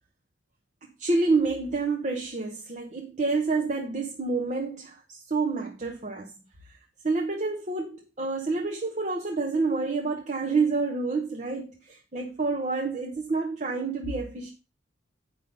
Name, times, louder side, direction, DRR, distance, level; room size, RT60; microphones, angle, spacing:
voice 1, 0.8-6.4 6.6-6.8 7.0-14.5, right 3 dB, 35° right, 1.0 m, -28 dB
8.3 x 5.5 x 5.4 m
head